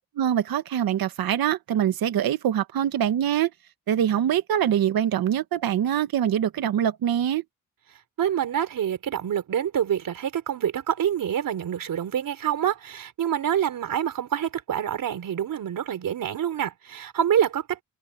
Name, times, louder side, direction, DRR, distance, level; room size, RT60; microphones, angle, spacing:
voice 1, 0.1-3.5 3.9-7.4, right 10 dB, 90° right, 1.6 m, -24 dB
voice 2, 8.2-17.8, right 9 dB, 70° right, 4.0 m, -26 dB
wide cardioid pair, 135°, 35 cm